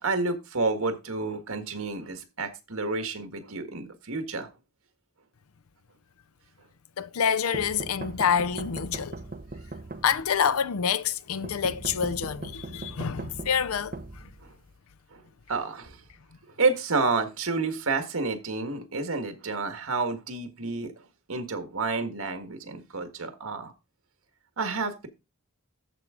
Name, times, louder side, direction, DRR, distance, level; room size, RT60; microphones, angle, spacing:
voice 1, 0.0-4.5 14.4-14.5 15.1-15.2 15.5-16.0 16.6-20.9 21.3-23.7 24.6-25.1, right 3 dB, 85° right, 1.8 m, -30 dB
voice 2, 7.0-9.2 10.0-14.3, left 7 dB, 85° left, 0.5 m, -27 dB
sound 1, 7.5-10.5 11.4-14.8, right 2 dB, 40° right, 1.0 m, -39 dB
14.0 x 4.7 x 3.8 m
head